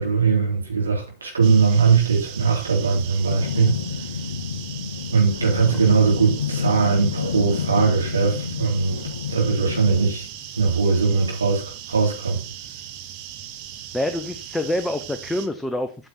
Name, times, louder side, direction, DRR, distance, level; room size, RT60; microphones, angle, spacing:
voice 1, 0.0-3.7 5.1-9.0 9.3-10.3 10.6-11.6 11.9-12.4, right 5 dB, 75° right, 3.8 m, -20 dB
sound 1, 1.4-15.5, right 10 dB, 45° right, 1.2 m, -38 dB
sound 2, 3.3-10.1, left 7 dB, 70° left, 0.6 m, -29 dB
voice 2, 13.9-16.1, left 1 dB, 5° left, 0.7 m, -26 dB
8.8 x 7.3 x 4.4 m
figure-of-eight pair, 90°, 0 cm